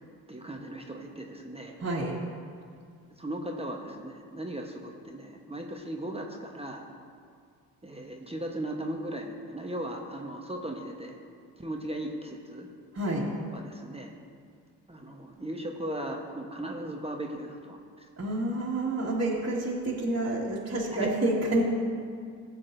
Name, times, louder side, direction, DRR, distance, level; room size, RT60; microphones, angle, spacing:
voice 1, 0.3-1.8 3.2-6.8 7.8-11.2 11.6-12.7 13.5-14.1 14.9-18.1 21.0-21.2, right 1 dB, 15° right, 1 dB, 1.1 m, -37 dB
voice 2, 1.8-2.2 12.9-13.3 18.2-21.6, right 1 dB, 30° right, -6 dB, 1.9 m, -28 dB
15.5 x 7.1 x 2.7 m, 2.2 s
hypercardioid pair, 50°, 46 cm